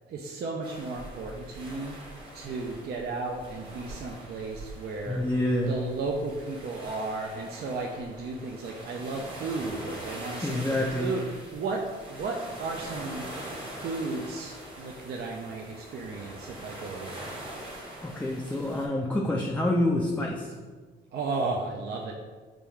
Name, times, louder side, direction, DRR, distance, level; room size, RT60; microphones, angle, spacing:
voice 1, 0.1-2.0 2.3-5.2 5.7-13.3 13.8-17.3 21.1-22.1, right 3 dB, 55° right, 0 dB, 0.5 m, -34 dB
sound 1, 0.6-18.9, right 1 dB, 25° right, 1.1 m, -43 dB
voice 2, 5.1-5.7 10.4-11.1 18.0-20.5, left 1 dB, 10° left, -1 dB, 0.4 m, -27 dB
5.1 x 2.3 x 3.1 m, 1.4 s
cardioid pair, 90°, 20 cm